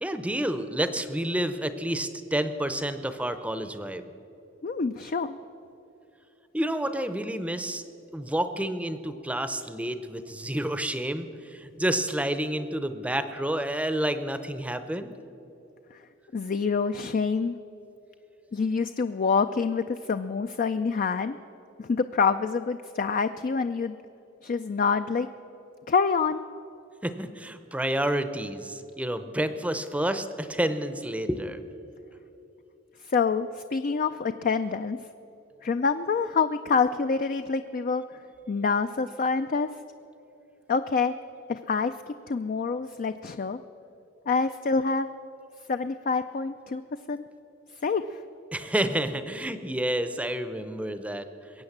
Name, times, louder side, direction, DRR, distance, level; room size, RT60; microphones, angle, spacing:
voice 1, 0.0-4.1 6.5-7.8 8.1-15.1 27.0-31.6 48.5-51.3, right 1 dB, 5° right, 10 dB, 0.6 m, -29 dB
voice 2, 4.6-5.4 15.9-16.0 16.3-17.5 18.5-21.4 21.8-24.0 24.4-25.3 25.9-26.4 33.0-35.0 35.6-38.2 38.5-39.7 40.7-41.1 41.5-43.6 44.3-45.1 45.7-46.8 47.1-47.2 47.8-48.2, left 5 dB, 45° left, 9 dB, 0.4 m, -26 dB
21.5 x 8.7 x 7.2 m, 3.0 s
head